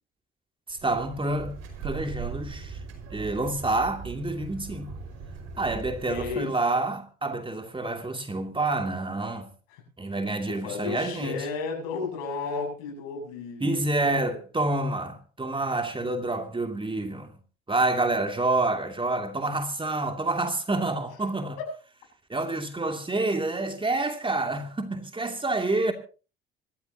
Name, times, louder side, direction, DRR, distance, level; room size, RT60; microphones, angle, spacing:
voice 1, 0.7-1.6 1.8-2.8 3.1-4.9 5.6-9.5 10.0-11.4 13.6-17.4 17.7-21.6 22.3-25.9, right 2 dB, 15° right, 2.7 m, -28 dB
sound 1, 0.7-6.4, right 5 dB, 60° right, 5.4 m, -39 dB
voice 2, 6.1-6.5 9.7-9.8 10.5-14.4 21.6-21.7, left 4 dB, 70° left, 7.6 m, -34 dB
26.0 x 13.0 x 2.9 m
hypercardioid pair, 60°, 29 cm